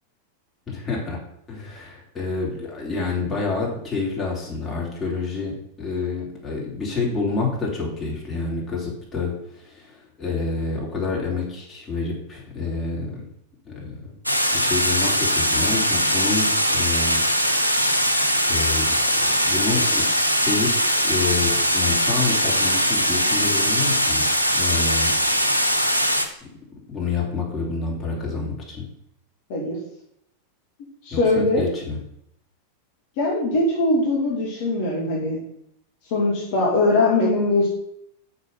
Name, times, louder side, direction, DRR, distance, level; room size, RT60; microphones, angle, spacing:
voice 1, 0.7-1.2 1.5-13.2 13.6-14.1 14.5-17.2 18.5-18.9 19.4-24.2 24.5-25.1 26.9-28.8 31.1-32.0, left 4 dB, 20° left, -3 dB, 3.3 m, -28 dB
sound 1, 14.3-26.3, equal, 85° right, 0.8 m, -21 dB
voice 2, 31.1-31.7 33.2-35.4 36.1-37.7, left 2 dB, 45° left, -3 dB, 2.2 m, -21 dB
6.7 x 6.0 x 5.6 m, 0.75 s
figure-of-eight pair, 90°, 0 cm